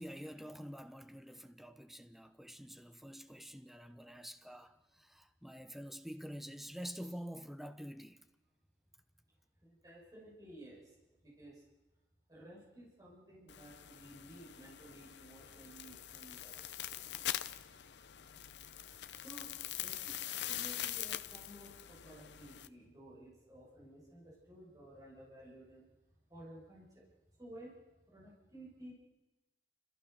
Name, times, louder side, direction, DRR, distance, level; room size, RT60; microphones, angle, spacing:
voice 1, 0.0-8.2, equal, ahead, 0.8 m, -47 dB
voice 2, 9.6-10.9 11.2-11.6 12.3-17.3 18.8-25.8 26.3-27.0 27.4-28.9, right 1 dB, 20° right, 6.6 m, -55 dB
sound 1, 13.5-22.7, left 12 dB, 80° left, 0.7 m, -43 dB
30.0 x 14.5 x 6.7 m
head